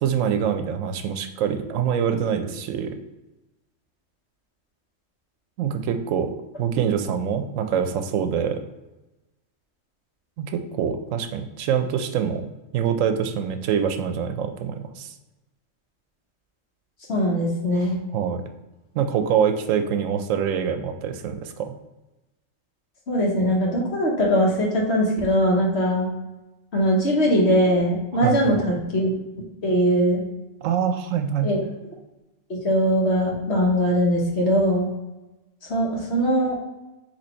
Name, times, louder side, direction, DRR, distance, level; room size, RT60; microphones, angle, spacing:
voice 1, 0.0-2.9 5.6-6.3 6.6-8.6 10.4-12.5 12.7-15.1 18.1-18.4 18.9-21.7 28.1-28.6 30.6-31.5, right 8 dB, 85° right, 7 dB, 0.9 m, -25 dB
voice 2, 17.1-18.0 23.1-26.1 26.7-29.1 29.6-30.2 31.4-31.6 32.5-34.9 35.7-36.5, equal, 55° left, -2 dB, 1.3 m, -21 dB
4.1 x 3.0 x 4.3 m, 1.1 s
omnidirectional pair, 1.3 m